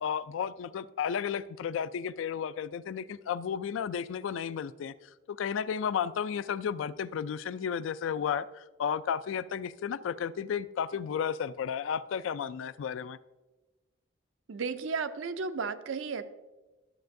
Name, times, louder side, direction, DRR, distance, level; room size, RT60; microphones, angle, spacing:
voice 1, 0.0-4.9 5.3-13.2, left 7 dB, 80° left, 16 dB, 0.3 m, -33 dB
voice 2, 14.5-16.2, right 5 dB, 80° right, 11 dB, 0.5 m, -33 dB
12.5 x 7.5 x 2.6 m, 1.1 s
head